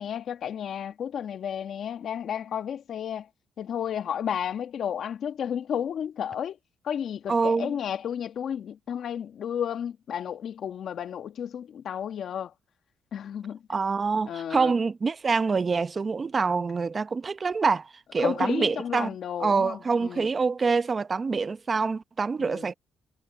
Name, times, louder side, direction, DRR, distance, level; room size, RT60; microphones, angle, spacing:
voice 1, 0.0-3.3 3.6-6.6 6.8-12.5 13.1-13.6 14.3-14.7 18.2-20.3 22.4-22.7, left 8 dB, 65° left, 1.8 m, -32 dB
voice 2, 7.3-7.7 13.7-19.1 19.4-22.7, right 4 dB, 35° right, 0.8 m, -26 dB
cardioid pair, 90°, 0 cm